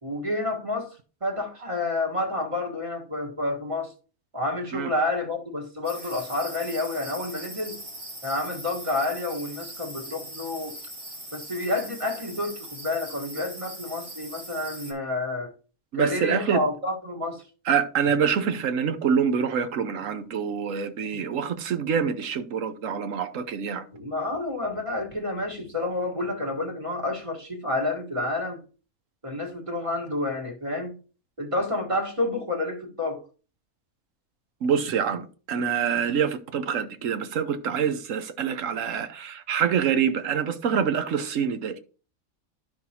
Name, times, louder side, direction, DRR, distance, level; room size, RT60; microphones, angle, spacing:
voice 1, 0.0-3.9 4.3-7.8 8.2-10.8 11.3-15.5 15.9-17.5 23.9-28.6 29.2-31.0 31.4-33.2, left 2 dB, 20° right, 1.6 m, -29 dB
sound 1, 5.8-14.9, right 1 dB, 80° right, 3.3 m, -41 dB
voice 2, 15.9-16.6 17.7-23.8 34.6-41.8, right 7 dB, 65° right, 1.2 m, -26 dB
12.0 x 5.8 x 2.9 m
omnidirectional pair, 1.5 m